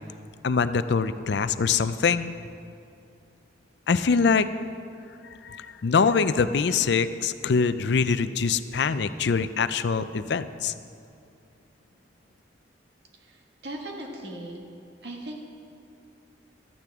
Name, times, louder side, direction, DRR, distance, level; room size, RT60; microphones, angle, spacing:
voice 1, 0.4-2.3 3.9-4.5 5.4-10.7, left 5 dB, 65° left, 13 dB, 0.4 m, -24 dB
voice 2, 13.2-14.6 15.0-15.5, right 1 dB, 65° right, 0 dB, 1.8 m, -38 dB
16.0 x 13.5 x 3.6 m, 2.5 s
head